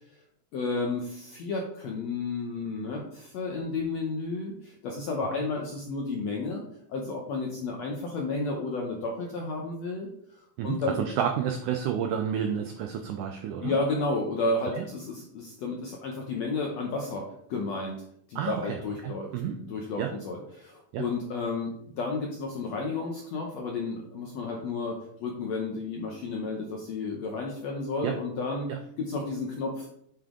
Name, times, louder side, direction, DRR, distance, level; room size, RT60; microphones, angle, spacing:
voice 1, 0.5-10.1 10.6-11.0 13.6-18.0 18.3-19.3 19.6-28.7 29.0-29.9, left 3 dB, 75° left, 0 dB, 1.5 m, -32 dB
voice 2, 10.6-13.8 14.8-14.9 18.4-18.8 19.0-19.6 20.0-20.1 20.9-21.0 28.0-28.2 28.7-28.8, right 8 dB, 85° right, 5 dB, 1.7 m, -30 dB
9.1 x 5.0 x 3.7 m, 0.70 s
omnidirectional pair, 4.2 m